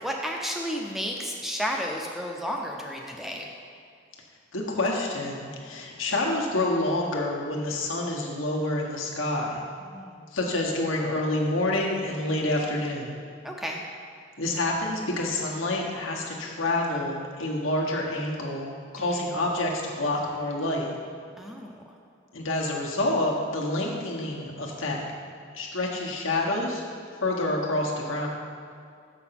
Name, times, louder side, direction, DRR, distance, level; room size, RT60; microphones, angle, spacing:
voice 1, 0.0-3.5 9.8-10.2 13.4-13.8 19.1-19.3 21.4-21.7, equal, ahead, 0 dB, 0.5 m, -32 dB
voice 2, 4.5-9.6 10.3-13.1 14.4-20.9 22.3-25.0 25.5-26.8 27.2-28.3, left 2 dB, 80° left, -1 dB, 1.3 m, -28 dB
6.9 x 6.0 x 5.8 m, 2.3 s
head